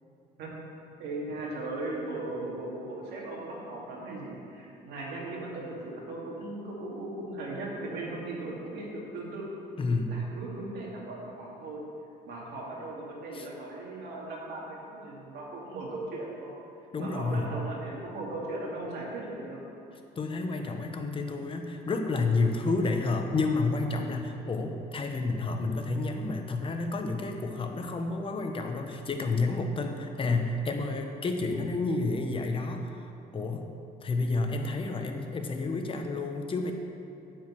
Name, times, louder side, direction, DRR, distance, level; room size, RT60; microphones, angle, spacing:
voice 1, 1.0-9.6 10.1-11.8 12.2-16.5 17.0-19.6, right 2 dB, 75° right, -3 dB, 2.4 m, -38 dB
voice 2, 9.8-10.1 13.3-13.5 16.9-17.5 20.2-32.9 33.3-33.7 34.0-36.7, left 3 dB, 30° left, 4 dB, 1.0 m, -30 dB
8.9 x 5.1 x 7.6 m, 2.9 s
cardioid pair, 110°, 17 cm